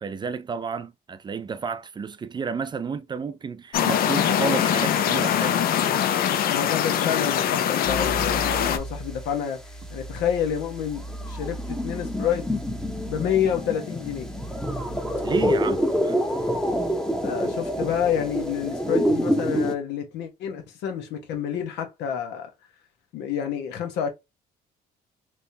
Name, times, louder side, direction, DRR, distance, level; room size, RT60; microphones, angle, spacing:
voice 1, 0.0-5.6 15.2-16.2, right 5 dB, 25° right, 0.4 m, -31 dB
sound 1, 3.7-8.8, left 9 dB, 60° left, 0.6 m, -23 dB
voice 2, 6.4-12.5 13.1-14.3 17.2-22.5 23.1-24.1, left 8 dB, 85° left, 1.1 m, -28 dB
sound 2, 7.9-9.4 9.7-19.8, equal, 5° left, 0.8 m, -27 dB
3.4 x 3.0 x 2.7 m
cardioid pair, 110°, 17 cm